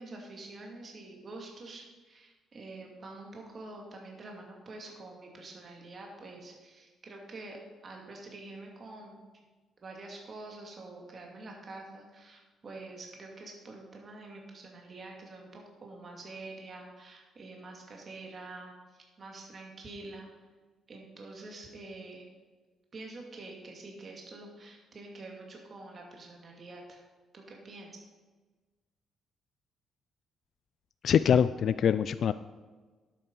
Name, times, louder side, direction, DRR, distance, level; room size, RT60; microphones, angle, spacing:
voice 1, 0.0-9.2 9.8-20.3 20.9-22.2 22.9-27.0 27.3-27.9, right 2 dB, 40° right, 0 dB, 2.3 m, -46 dB
voice 2, 31.0-32.3, left 8 dB, 55° left, 13 dB, 0.3 m, -24 dB
11.0 x 8.7 x 5.4 m, 1.3 s
cardioid pair, 115°, 0 cm